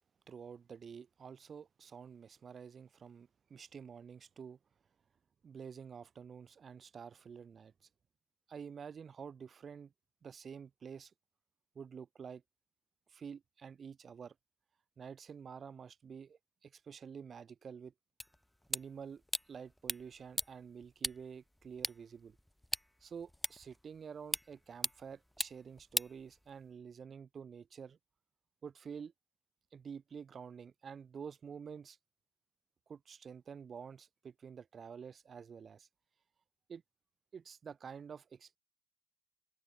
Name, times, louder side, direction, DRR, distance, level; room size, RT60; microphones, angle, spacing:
voice 1, 0.3-4.6 5.4-7.9 8.5-9.9 10.2-11.1 11.7-12.4 13.1-14.3 15.0-17.9 18.7-19.2 19.5-22.4 23.0-28.0 28.6-29.1 29.7-32.0 32.9-35.9 36.7-36.8 37.3-38.6, right 6 dB, 50° right, 4.1 m, -49 dB
sound 1, 18.2-26.8, left 1 dB, 5° left, 1.4 m, -42 dB
cardioid pair, 90°, 0 cm